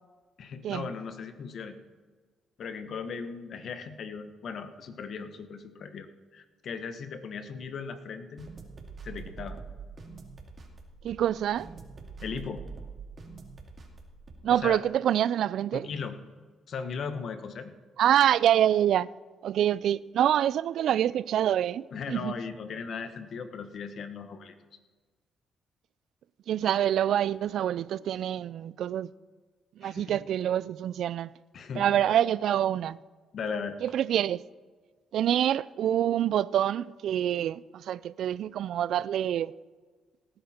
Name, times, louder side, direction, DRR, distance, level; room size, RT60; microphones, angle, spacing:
voice 1, 0.4-1.7 2.6-6.1 6.3-8.5 9.0-9.6 12.2-12.6 14.5-14.8 15.7-16.2 16.7-17.7 21.9-24.5 29.8-30.2 31.5-32.2 33.3-33.8, left 5 dB, 60° left, 1.2 m, -37 dB
sound 1, 8.4-14.7, right 4 dB, 40° right, 2.2 m, -45 dB
voice 2, 11.0-11.7 14.4-15.9 18.0-19.1 19.4-22.3 26.5-29.1 29.8-31.3 31.8-33.0 33.8-34.4 35.1-39.5, right 10 dB, 70° right, 0.3 m, -26 dB
17.5 x 10.5 x 4.4 m
cardioid pair, 90°, 0 cm